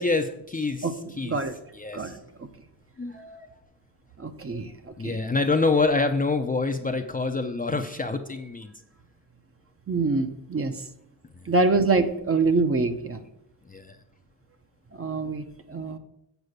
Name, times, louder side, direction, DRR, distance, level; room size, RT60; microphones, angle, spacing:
voice 1, 0.0-1.4 1.8-2.1 3.0-3.4 5.0-8.7 11.5-11.6 13.7-14.0, left 3 dB, 20° left, 5 dB, 0.5 m, -26 dB
voice 2, 1.2-1.5 1.9-2.5 4.2-5.2 9.9-10.8 11.4-13.2 14.9-16.0, right 3 dB, 30° right, 8 dB, 0.7 m, -25 dB
8.1 x 4.8 x 6.6 m, 0.80 s
cardioid pair, 105°, 44 cm